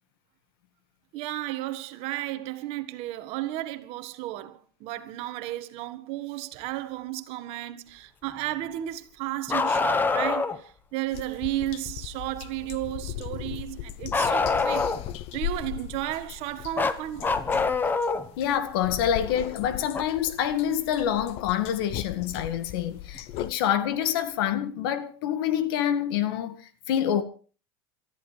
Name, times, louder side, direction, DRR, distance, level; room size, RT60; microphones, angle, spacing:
voice 1, 1.1-14.9 15.3-17.4, right 15 dB, 50° right, 1.6 m, -33 dB
Bark, 9.5-10.6 14.1-15.2 16.8-18.3 19.9-20.0 22.0-22.1 23.2-23.3, left 4 dB, 15° left, 1.1 m, -25 dB
sound 1, 11.1-23.5, left 12 dB, 50° left, 0.8 m, -38 dB
voice 2, 18.4-27.2, left 10 dB, 70° left, 2.0 m, -27 dB
29.0 x 14.0 x 3.4 m
supercardioid pair, 130°, 13 cm